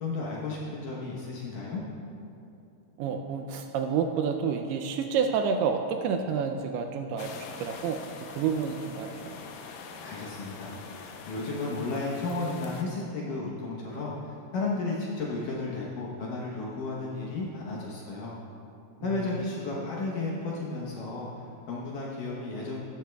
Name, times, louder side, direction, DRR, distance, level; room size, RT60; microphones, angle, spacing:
voice 1, 0.0-1.8 10.0-10.7 11.3-18.3 19.0-22.8, left 3 dB, 70° left, -4 dB, 2.1 m, -33 dB
voice 2, 3.0-9.4 19.0-19.4, right 6 dB, 80° right, 5 dB, 2.4 m, -29 dB
sound 1, 7.2-12.8, left 5 dB, 85° left, 2.0 m, -44 dB
15.0 x 12.5 x 2.3 m, 2.7 s
omnidirectional pair, 4.9 m